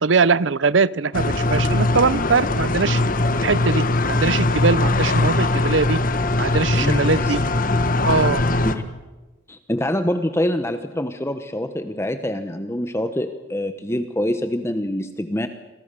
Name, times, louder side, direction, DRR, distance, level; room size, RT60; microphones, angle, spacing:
voice 1, 0.0-3.0 3.4-6.0 6.4-7.4 8.0-8.4, right 4 dB, 70° right, 20 dB, 0.7 m, -21 dB
sound 1, 1.1-8.8, left 2 dB, 45° left, 1.5 m, -21 dB
voice 2, 6.7-7.4 8.6-8.8 9.5-15.5, left 1 dB, 15° left, 9 dB, 1.0 m, -25 dB
28.0 x 22.5 x 6.9 m, 1.2 s
head